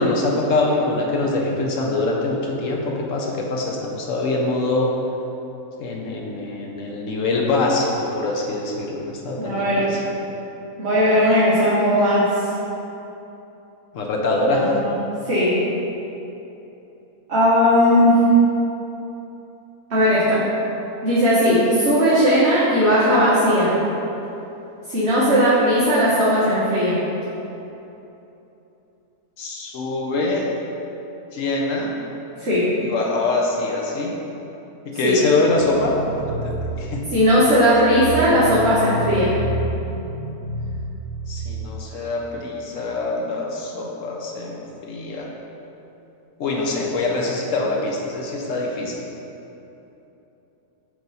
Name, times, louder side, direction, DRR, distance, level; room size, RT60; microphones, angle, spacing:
voice 1, 0.0-4.9 5.8-10.0 13.9-14.7 29.4-30.5 31.3-31.9 32.8-34.1 34.8-37.0 41.3-45.3 46.4-49.0, left 2 dB, 65° left, -1 dB, 1.1 m, -24 dB
voice 2, 9.4-9.9 10.8-12.4 14.4-14.9 15.2-15.6 17.3-18.2 19.9-20.4 21.0-23.7 24.9-27.0 32.4-32.7 35.0-35.2 37.1-39.3, equal, 50° right, -10 dB, 1.4 m, -17 dB
sound 1, 35.5-41.7, right 1 dB, 80° right, 1.1 m, -29 dB
9.2 x 3.1 x 4.1 m, 3.0 s
omnidirectional pair, 1.6 m